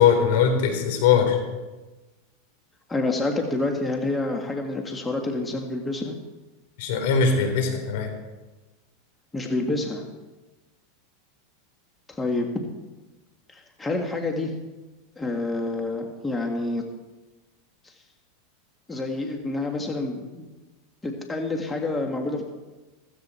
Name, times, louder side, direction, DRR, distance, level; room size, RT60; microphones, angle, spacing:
voice 1, 0.0-1.4 6.8-8.1, left 7 dB, 70° left, 5 dB, 4.1 m, -20 dB
voice 2, 2.9-6.2 9.3-10.0 12.1-12.5 13.5-14.6 15.2-16.8 18.9-20.5 21.0-22.4, left 2 dB, 15° left, 2 dB, 1.9 m, -28 dB
15.5 x 15.5 x 4.5 m, 1.2 s
supercardioid pair, 120°, 0 cm